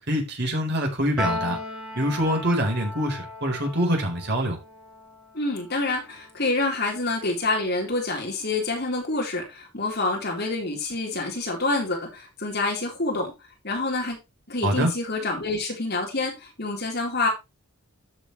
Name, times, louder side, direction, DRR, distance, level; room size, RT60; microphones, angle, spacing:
voice 1, 0.1-1.6 1.9-4.6 14.6-14.9, equal, 50° right, 4.2 m, -25 dB
Piano, 1.2-7.7, left 2 dB, 5° right, 3.8 m, -37 dB
voice 2, 5.3-13.3 13.6-14.2 14.5-17.3, left 2 dB, 45° left, 4.0 m, -27 dB
13.0 x 7.0 x 3.2 m
head